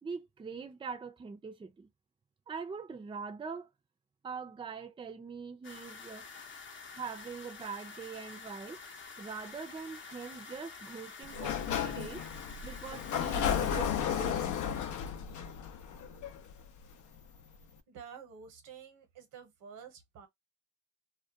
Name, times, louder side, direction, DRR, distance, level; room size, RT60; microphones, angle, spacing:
voice 1, 0.0-1.9 2.5-3.7 4.2-6.3 6.9-8.8 9.2-12.2 12.6-14.4, right 5 dB, 15° right, 0.4 m, -43 dB
sound 1, 5.6-13.5, left 4 dB, 40° left, 0.6 m, -48 dB
Sliding door, 11.2-16.9, left 8 dB, 75° left, 0.6 m, -34 dB
voice 2, 17.9-20.3, right 7 dB, 80° right, 0.9 m, -50 dB
2.3 x 2.1 x 2.7 m
cardioid pair, 90°, 30 cm